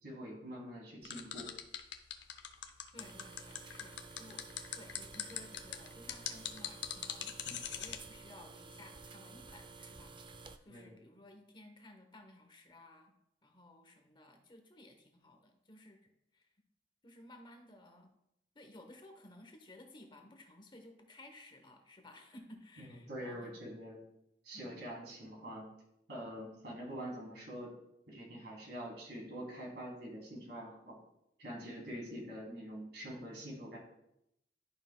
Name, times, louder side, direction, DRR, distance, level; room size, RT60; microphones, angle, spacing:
voice 1, 0.0-1.5 7.4-7.6 10.7-11.0 22.8-24.0 24.4-25.7 26.1-27.7 28.1-30.9 31.4-33.8, equal, 70° right, -2 dB, 2.9 m, -45 dB
sound 1, 1.0-8.0, left 10 dB, 85° left, 0.7 m, -41 dB
voice 2, 2.9-4.4 4.7-7.3 7.7-10.2 10.6-13.1 13.4-16.0 16.3-16.5 17.0-18.1 18.5-23.7 24.5-24.9, left 1 dB, 25° left, 4 dB, 0.9 m, -56 dB
sound 2, 3.0-10.6, right 4 dB, 25° right, 0.4 m, -53 dB
11.5 x 5.8 x 2.2 m, 0.81 s
head